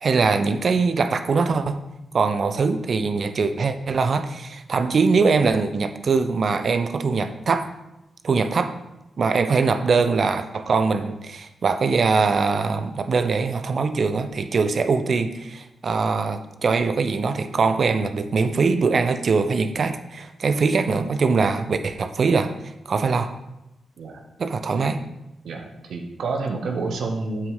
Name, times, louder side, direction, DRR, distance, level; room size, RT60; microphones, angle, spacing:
voice 1, 0.0-1.8 2.1-7.7 8.2-8.7 9.2-23.3 24.4-25.0, right 4 dB, 60° right, 9 dB, 0.7 m, -22 dB
voice 2, 25.4-27.5, right 3 dB, 75° right, 2 dB, 1.0 m, -29 dB
8.8 x 4.8 x 5.5 m, 0.92 s
supercardioid pair, 45°, 0 cm